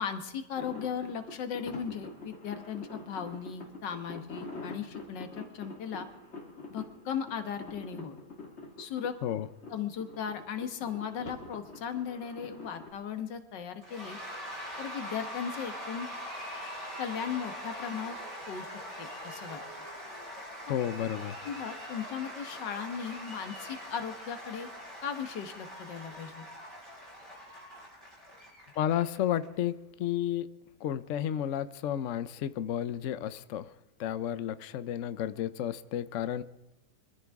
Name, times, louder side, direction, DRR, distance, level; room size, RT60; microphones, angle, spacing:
voice 1, 0.0-6.1 6.7-8.2 8.8-9.1 9.7-14.2 14.8-16.1 17.0-18.2 18.5-18.7 19.0-19.6 21.4-24.7 25.0-26.5, left 7 dB, 85° left, 8 dB, 1.9 m, -37 dB
sound 1, 0.6-12.9, left 2 dB, 40° left, 2.4 m, -46 dB
Cheering / Applause / Crowd, 13.8-29.4, equal, 20° right, 7.3 m, -43 dB
voice 2, 20.7-21.3 28.8-30.5 30.8-33.7 34.0-36.4, left 10 dB, 60° left, 13 dB, 0.8 m, -32 dB
24.5 x 14.0 x 3.6 m, 0.99 s
omnidirectional pair, 1.9 m